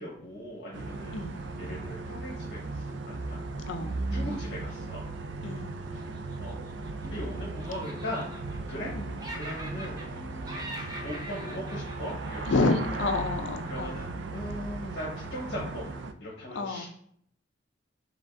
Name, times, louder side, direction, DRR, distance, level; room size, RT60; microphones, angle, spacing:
voice 1, 0.0-3.4 4.1-5.0 5.9-6.1 6.4-6.5 7.0-8.3 8.7-8.9 9.3-12.7 13.6-15.9 16.2-16.9, left 1 dB, 65° left, -6 dB, 1.0 m, -39 dB
sound 1, 0.7-16.1, right 3 dB, 80° right, 0.4 m, -37 dB
voice 2, 3.6-4.0 5.4-5.8 8.9-9.1 12.5-14.0 15.6-15.7 16.5-16.9, left 3 dB, 85° left, 7 dB, 0.5 m, -29 dB
Laughter, 6.0-7.2 7.6-8.9 9.2-10.2 10.4-13.0, right 1 dB, 20° right, 0.6 m, -43 dB
4.9 x 3.3 x 2.5 m, 0.66 s
head